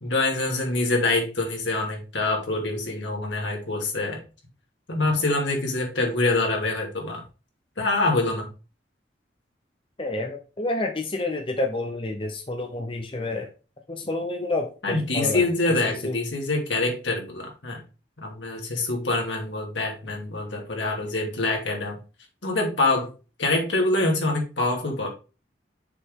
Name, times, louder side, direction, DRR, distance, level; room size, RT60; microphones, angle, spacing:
voice 1, 0.0-4.2 4.9-7.2 7.8-8.5 14.8-17.8 18.2-22.0 22.4-23.1 23.4-25.1, left 2 dB, 85° left, 0 dB, 2.5 m, -25 dB
voice 2, 10.0-13.5 13.9-15.4 15.8-16.2, left 2 dB, 30° left, 4 dB, 0.8 m, -29 dB
6.8 x 5.2 x 3.7 m, 0.32 s
head